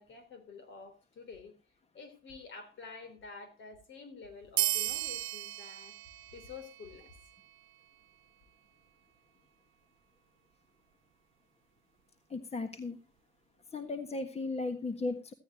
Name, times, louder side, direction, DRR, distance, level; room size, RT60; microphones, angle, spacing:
voice 1, 0.0-1.5 1.9-6.0 6.3-7.1, left 4 dB, 70° left, 3.8 m, -49 dB
sound 1, 4.6-7.6, right 14 dB, 90° right, 0.7 m, -35 dB
voice 2, 12.3-13.0 13.7-15.3, left 3 dB, 30° left, 1.5 m, -36 dB
15.0 x 14.0 x 2.9 m
cardioid pair, 90°, 20 cm